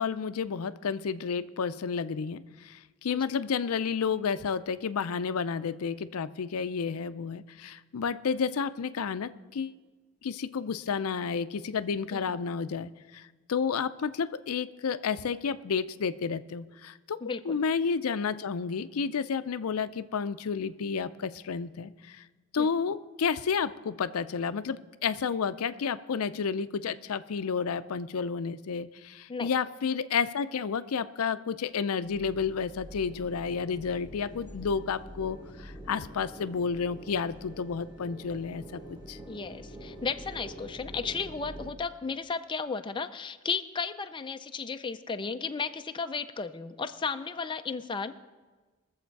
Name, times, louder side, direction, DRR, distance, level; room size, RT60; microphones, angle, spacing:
voice 1, 0.0-9.8 10.2-17.2 17.5-22.2 22.5-39.2, left 6 dB, 80° left, 13 dB, 0.5 m, -31 dB
voice 2, 17.2-17.6 22.6-22.7 29.3-29.5 39.3-48.2, left 5 dB, 20° left, 8 dB, 0.4 m, -34 dB
sound 1, 32.0-41.7, right 1 dB, 20° right, 1.8 m, -46 dB
21.5 x 7.2 x 4.6 m, 1.3 s
head